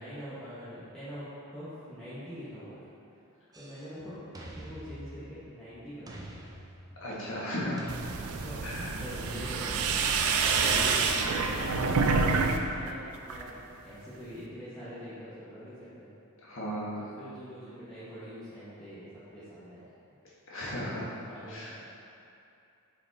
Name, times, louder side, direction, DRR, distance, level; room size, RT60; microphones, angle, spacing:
voice 1, 0.0-2.8 3.5-6.5 8.2-16.1 16.9-19.9 21.1-21.7, equal, 5° left, -15 dB, 1.3 m, -44 dB
sound 1, 3.5-3.9 4.3-5.6 6.1-7.2 7.8-8.8, right 1 dB, 15° right, 0.5 m, -46 dB
voice 2, 7.0-7.8 8.6-8.9 16.4-17.0 20.5-21.1 21.5-21.7, equal, 65° left, -7 dB, 1.5 m, -35 dB
sound 2, 7.9-12.6 12.9-13.5, right 4 dB, 70° right, 0.4 m, -27 dB
5.2 x 4.8 x 4.1 m, 2.6 s
head